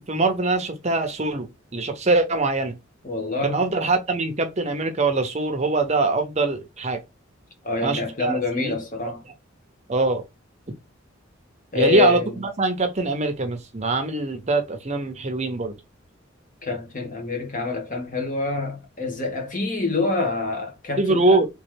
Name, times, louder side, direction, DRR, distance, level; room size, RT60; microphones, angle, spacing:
voice 1, 0.0-2.7 3.4-7.0 7.8-8.7 9.9-10.2 11.7-15.7 21.0-21.5, right 3 dB, 35° right, 0.7 m, -23 dB
voice 2, 3.0-3.7 7.6-9.2 11.7-12.4 16.6-21.4, left 4 dB, 40° left, 1.2 m, -26 dB
3.3 x 3.2 x 3.2 m
head